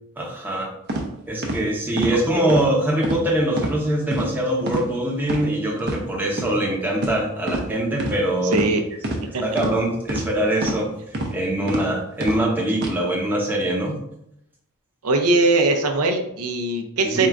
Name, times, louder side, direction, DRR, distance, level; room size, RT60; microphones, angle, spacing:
voice 1, 0.2-0.7 1.3-8.6 9.4-10.9 11.3-14.0 17.0-17.3, right 1 dB, 10° right, -3 dB, 0.8 m, -23 dB
sound 1, 0.9-1.0 1.4-1.6 2.0-2.1 2.5-2.7 3.0-3.2 3.6-3.7 4.1-4.3 4.7-4.9 5.2-5.4 5.8-6.0 6.4-6.5 7.0-7.2 7.5-7.6 8.0-8.1 8.5-8.7 9.0-9.2 9.6-9.7 10.1-10.2 10.6-10.8 11.1-11.3 11.7-11.8 12.2-12.4 12.8-12.9, right 1 dB, 50° right, 0.8 m, -26 dB
voice 2, 8.5-8.8 9.3-9.4 15.0-17.3, right 2 dB, 90° right, 4 dB, 0.7 m, -20 dB
3.7 x 2.5 x 4.5 m, 0.79 s
head